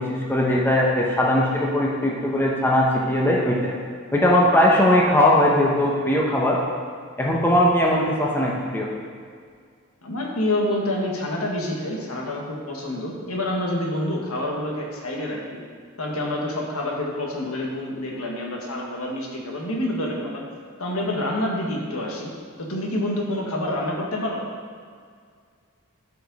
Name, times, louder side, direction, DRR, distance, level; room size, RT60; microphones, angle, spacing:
voice 1, 0.0-3.7 4.1-6.6 7.2-8.9, left 1 dB, 10° left, -3 dB, 1.0 m, -19 dB
voice 2, 10.0-15.6 16.0-20.4 20.8-22.3 22.6-24.4, left 1 dB, 75° left, -1 dB, 1.6 m, -27 dB
12.0 x 5.0 x 4.1 m, 2.1 s
head